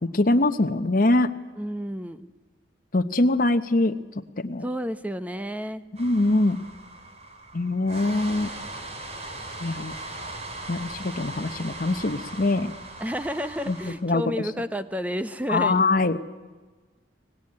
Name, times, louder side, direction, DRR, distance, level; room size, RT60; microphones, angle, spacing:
voice 1, 0.1-1.3 2.9-3.9 4.4-4.6 6.0-6.6 7.5-8.5 9.6-9.9 10.7-12.7 13.7-14.2 15.5-16.2, left 2 dB, 50° left, 7 dB, 0.9 m, -23 dB
voice 2, 1.6-2.3 4.6-5.8 13.0-15.8, equal, 10° right, 12 dB, 0.9 m, -31 dB
sound 1, 6.0-13.9, right 2 dB, 35° right, 3.2 m, -39 dB
24.0 x 18.5 x 9.7 m, 1.3 s
head